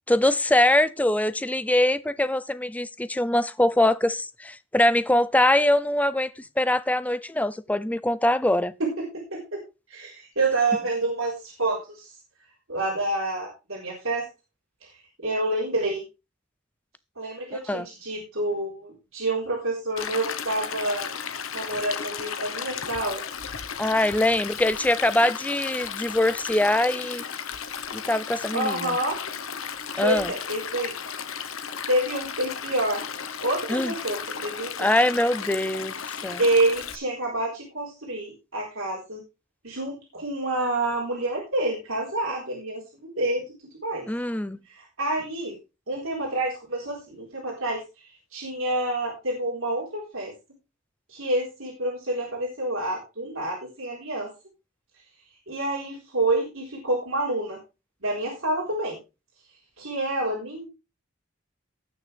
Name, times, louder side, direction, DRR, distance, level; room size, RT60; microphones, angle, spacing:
voice 1, 0.1-6.3 6.6-8.7 17.7-17.9 23.8-27.2 27.9-29.0 30.0-30.3 33.7-33.9 34.8-35.9 36.2-36.4 44.1-44.6, left 1 dB, 5° left, 0.5 m, -23 dB
voice 2, 8.8-9.4 9.9-12.2 12.7-14.3 14.8-14.9 15.2-16.0 17.2-21.1 21.5-23.2 28.5-29.2 30.0-30.9 31.9-33.0 33.4-34.9 36.4-39.2 39.6-43.4 43.8-44.1 44.7-45.5 45.9-50.3 51.1-54.3 55.5-57.6 58.0-59.0 59.8-60.7, right 2 dB, 75° right, 4.1 m, -28 dB
Stream, 20.0-37.0, left 7 dB, 75° left, 1.1 m, -34 dB
18.5 x 6.5 x 3.4 m
head